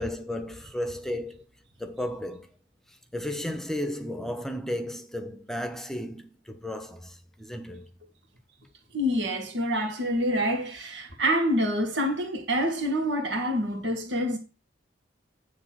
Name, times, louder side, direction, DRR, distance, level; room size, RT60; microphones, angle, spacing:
voice 1, 0.0-1.5 1.8-2.5 3.1-7.9, left 1 dB, ahead, 0.9 m, -34 dB
voice 2, 8.9-14.4, equal, 80° right, 2.0 m, -27 dB
9.4 x 3.3 x 6.1 m
head